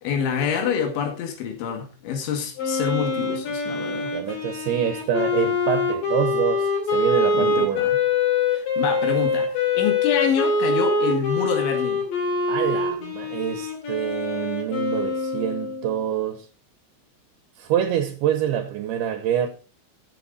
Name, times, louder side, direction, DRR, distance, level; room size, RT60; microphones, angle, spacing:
voice 1, 0.0-4.4 7.3-8.0 8.5-12.1, left 7 dB, 85° left, 4.5 m, -27 dB
Wind instrument woodwind instrument, 2.6-16.0, left 3 dB, 55° left, 4.0 m, -24 dB
voice 2, 4.1-7.9 12.5-16.5 17.6-19.5, right 10 dB, 75° right, 2.7 m, -26 dB
13.5 x 7.7 x 4.1 m
omnidirectional pair, 5.3 m